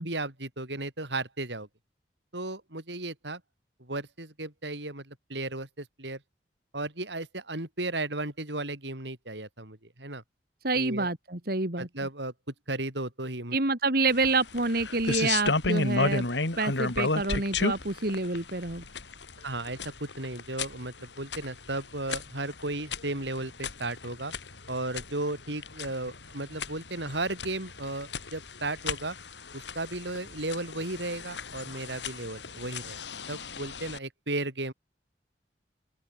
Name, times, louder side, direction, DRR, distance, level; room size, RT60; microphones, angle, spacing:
voice 1, 0.0-1.7 2.3-3.4 3.8-6.2 6.7-10.2 10.7-11.1 11.8-13.6 19.4-24.3 24.7-29.2 29.5-33.0 33.3-34.7, right 2 dB, 80° right, 5.7 m, -35 dB
voice 2, 10.6-11.9 13.5-16.3 16.6-18.8, right 3 dB, 55° right, 2.8 m, -27 dB
sound 1, 14.1-34.0, left 3 dB, 85° left, 3.0 m, -34 dB
open air
head